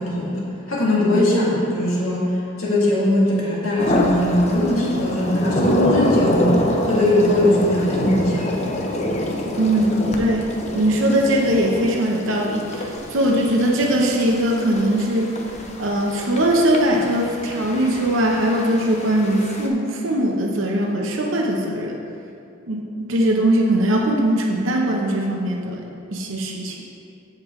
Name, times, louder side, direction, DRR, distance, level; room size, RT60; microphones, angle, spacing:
voice 1, 0.0-8.5, left 1 dB, 85° left, -6 dB, 2.2 m, -20 dB
sound 1, 3.8-19.7, left 1 dB, 30° left, 0.7 m, -26 dB
voice 2, 9.6-15.3 15.8-22.0 22.7-26.8, right 1 dB, 65° right, -1 dB, 0.9 m, -20 dB
14.0 x 5.2 x 3.2 m, 2.5 s
head